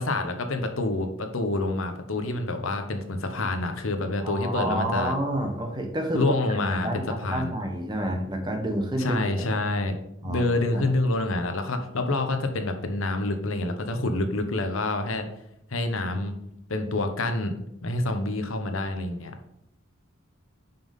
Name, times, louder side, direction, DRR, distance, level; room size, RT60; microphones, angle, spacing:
voice 1, 0.0-5.1 6.1-7.5 9.0-10.0 10.2-15.3 15.7-16.3 16.7-17.5 17.8-19.3, left 2 dB, 75° left, 6 dB, 1.0 m, -27 dB
voice 2, 4.2-6.2 6.5-9.5 10.2-10.4 10.7-10.9, right 1 dB, 20° right, 3 dB, 1.2 m, -29 dB
5.9 x 5.5 x 5.3 m, 0.80 s
head